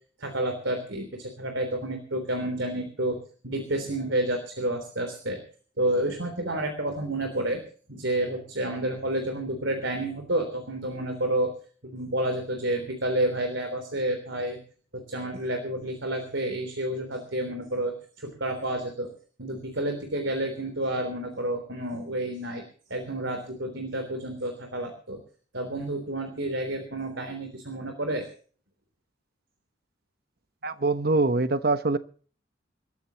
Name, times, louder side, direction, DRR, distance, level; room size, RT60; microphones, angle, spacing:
voice 1, 0.2-3.2 3.4-5.4 5.8-7.6 7.9-11.5 11.8-14.6 14.9-19.1 19.4-22.6 22.9-25.2 25.5-28.3, right 1 dB, 80° right, 3.5 m, -30 dB
voice 2, 30.6-32.0, right 3 dB, 55° right, 1.0 m, -24 dB
27.0 x 13.5 x 3.0 m
head